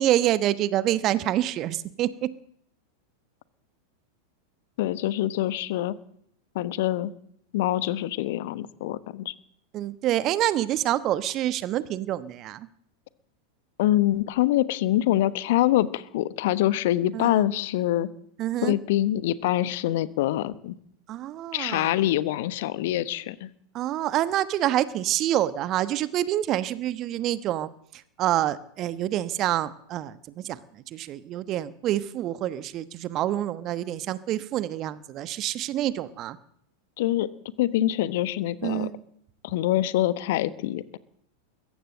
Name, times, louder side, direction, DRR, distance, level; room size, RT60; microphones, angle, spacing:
voice 1, 0.0-2.3 9.7-12.7 17.1-17.4 18.4-18.7 21.1-22.0 23.7-27.7 28.2-36.4 38.6-39.0, right 13 dB, 35° right, 16 dB, 1.1 m, -27 dB
voice 2, 4.8-5.9 6.5-7.1 7.5-9.3 13.8-18.1 18.6-20.7 21.5-23.5 37.0-37.3 37.6-38.9 39.4-41.0, left 14 dB, 50° left, 16 dB, 1.2 m, -25 dB
22.0 x 16.0 x 7.8 m, 0.69 s
figure-of-eight pair, 90°, 0 cm